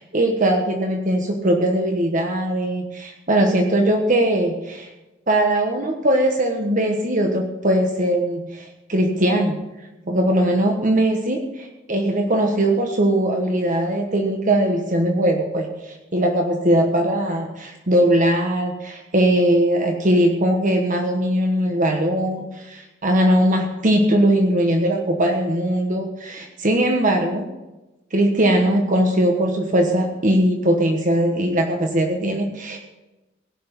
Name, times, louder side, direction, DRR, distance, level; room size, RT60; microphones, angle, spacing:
voice 1, 0.0-4.9 5.3-9.6 10.1-27.5 28.1-32.8, right 1 dB, 40° right, 3 dB, 1.2 m, -20 dB
17.0 x 6.1 x 7.2 m, 1.0 s
head